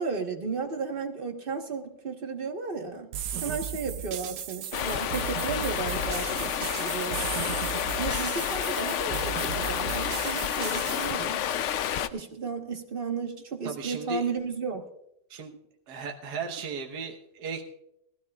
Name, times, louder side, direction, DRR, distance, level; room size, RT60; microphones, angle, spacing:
voice 1, 0.0-3.1 3.4-7.6 8.0-11.4 12.1-14.8, right 5 dB, 35° right, 4 dB, 1.2 m, -34 dB
sound 1, 3.1-11.1, right 9 dB, 85° right, 1.4 m, -36 dB
Stream, 4.7-12.1, left 9 dB, 75° left, 0.6 m, -30 dB
voice 2, 13.6-14.3 15.3-15.5 15.9-17.6, right 4 dB, 70° right, 2 dB, 1.7 m, -36 dB
20.0 x 15.5 x 2.3 m, 0.80 s
omnidirectional pair, 1.9 m